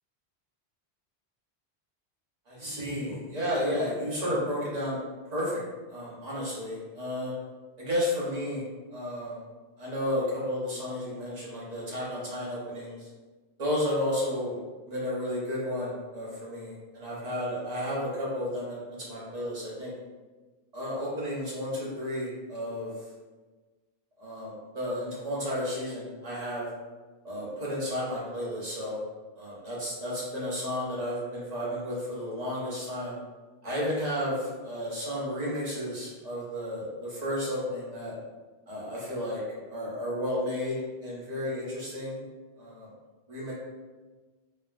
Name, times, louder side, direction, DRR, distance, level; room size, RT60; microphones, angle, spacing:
voice 1, 2.5-5.0 5.3-5.6 5.9-7.3 7.8-8.6 8.9-9.4 9.8-13.1 13.6-14.6 14.9-19.9 20.7-22.9 24.2-26.7 27.2-29.0 29.3-33.2 33.6-38.1 38.7-39.4 39.7-40.8 41.0-42.2 42.6-42.9 43.3-43.5, left 1 dB, 40° right, -6 dB, 0.9 m, -32 dB
3.2 x 2.0 x 2.3 m, 1.3 s
omnidirectional pair, 1.1 m